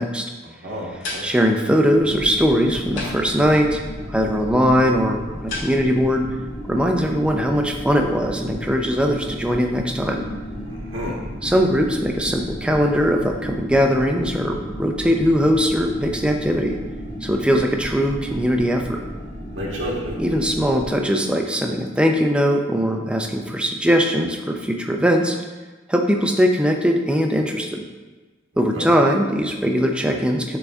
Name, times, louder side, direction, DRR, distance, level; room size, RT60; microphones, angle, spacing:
voice 1, 0.4-1.3 10.7-11.1 19.5-20.2 28.7-28.9, equal, 85° right, -4 dB, 1.3 m, -30 dB
sound 1, 0.7-6.1, left 2 dB, 85° left, 1.9 m, -38 dB
voice 2, 1.2-3.8 4.1-6.2 6.7-10.2 11.4-16.8 17.2-19.0 20.2-25.4 25.9-27.8 28.6-30.6, equal, 5° right, 2 dB, 0.5 m, -20 dB
sound 2, 2.0-20.9, equal, 50° left, 1.3 m, -34 dB
10.0 x 4.0 x 2.4 m, 1.3 s
head